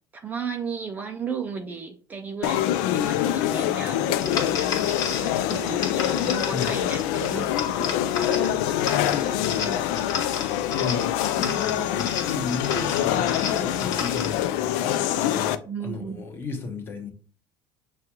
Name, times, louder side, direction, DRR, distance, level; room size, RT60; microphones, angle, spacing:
voice 1, 0.1-7.5 7.8-8.0 8.3-8.5 9.1-9.8 15.7-16.2, right 5 dB, 20° right, 0.4 m, -35 dB
sound 1, 2.4-15.6, left 11 dB, 90° left, 0.4 m, -25 dB
sound 2, 4.2-14.5, left 5 dB, 45° left, 1.1 m, -33 dB
voice 2, 8.7-17.1, left 4 dB, 25° left, 0.9 m, -35 dB
6.1 x 2.3 x 2.9 m
cardioid pair, 155°, 9 cm